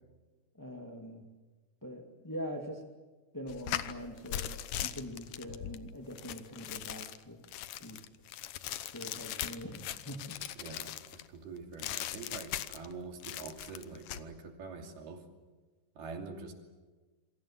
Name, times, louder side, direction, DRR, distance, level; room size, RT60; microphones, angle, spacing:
voice 1, 0.6-1.3 1.8-2.8 3.3-7.4 7.8-8.0 8.9-10.4, equal, 10° left, 3 dB, 1.2 m, -43 dB
sound 1, 3.5-11.3 11.8-12.9 13.2-14.2, left 12 dB, 70° left, 2.0 m, -40 dB
voice 2, 10.6-15.3 16.0-16.5, right 4 dB, 70° right, 4 dB, 4.6 m, -45 dB
27.5 x 25.5 x 7.5 m, 1.3 s
omnidirectional pair, 4.6 m